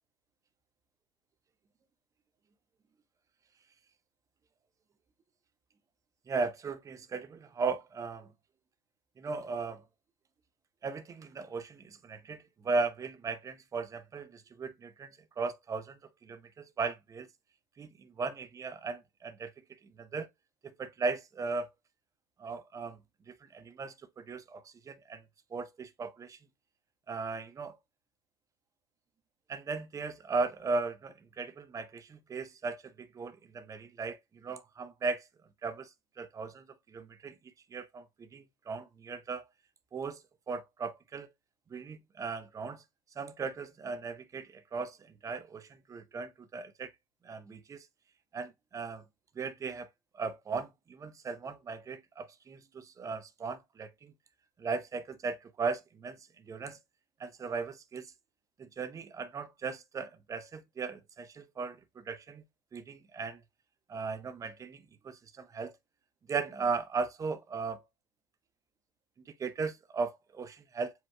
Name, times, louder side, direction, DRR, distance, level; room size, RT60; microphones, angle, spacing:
voice 1, 6.3-8.3 9.2-9.8 10.8-17.3 17.8-19.5 20.0-20.3 20.6-21.7 22.4-23.0 23.3-25.2 25.5-26.4 27.1-27.8 29.5-35.3 35.6-35.9 36.2-37.4 37.7-39.5 39.9-40.2 40.5-41.3 41.7-42.8 43.2-46.9 47.2-47.9 48.3-49.0 49.4-49.9 50.1-54.1 54.6-56.2 56.5-56.8 57.2-58.1 58.6-62.4 62.7-63.4 63.9-65.7 66.3-67.8 69.4-70.9, right 4 dB, 25° right, 0.8 m, -37 dB
7.6 x 2.9 x 2.3 m
hypercardioid pair, 80°, 13 cm